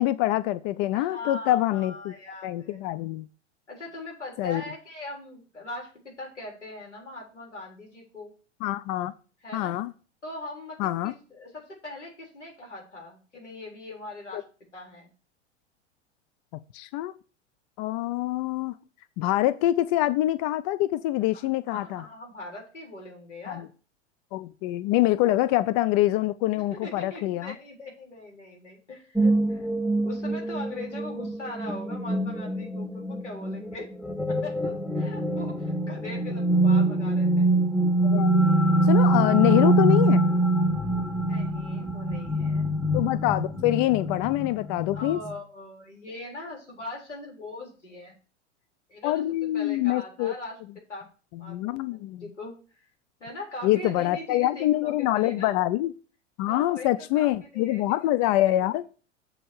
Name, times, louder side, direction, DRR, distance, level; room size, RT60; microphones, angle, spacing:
voice 1, 0.0-2.1 2.4-3.3 4.4-4.6 8.6-9.1 9.5-9.9 10.8-11.1 14.3-14.4 16.7-17.1 17.8-18.7 19.2-22.0 23.5-23.7 24.3-27.5 38.0-38.5 38.9-40.3 42.9-45.2 49.0-50.3 51.3-52.2 53.6-55.9 56.4-58.8, left 15 dB, 30° left, 0.4 m, -25 dB
voice 2, 0.9-2.8 3.7-8.3 9.4-9.8 10.2-14.4 14.7-15.1 21.3-23.7 26.7-29.7 30.0-33.9 34.3-37.5 41.2-42.7 44.9-48.2 48.9-49.2 49.5-51.1 51.4-52.9 53.2-55.6 56.5-57.3 57.5-57.8, left 2 dB, 85° left, 3.9 m, -41 dB
sound 1, 29.2-45.3, right 1 dB, ahead, 0.9 m, -24 dB
7.6 x 4.3 x 6.4 m
figure-of-eight pair, 90°, 35 cm